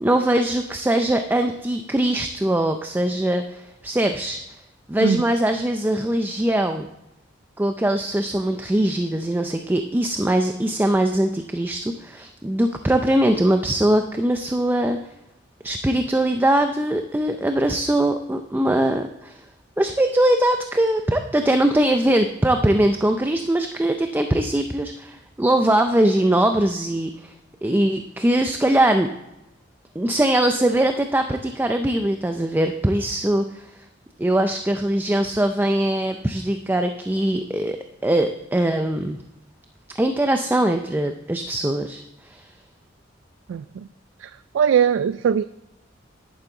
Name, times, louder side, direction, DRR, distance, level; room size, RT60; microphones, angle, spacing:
voice 1, 0.0-4.4 4.9-6.9 7.6-15.0 15.6-19.4 19.8-27.3 27.6-29.1 30.0-33.7 34.2-39.2 40.0-42.0 42.3-42.4, right 1 dB, 10° right, 7 dB, 0.4 m, -21 dB
voice 2, 44.5-45.4, right 7 dB, 80° right, 14 dB, 0.3 m, -19 dB
10.5 x 9.1 x 3.8 m, 0.92 s
head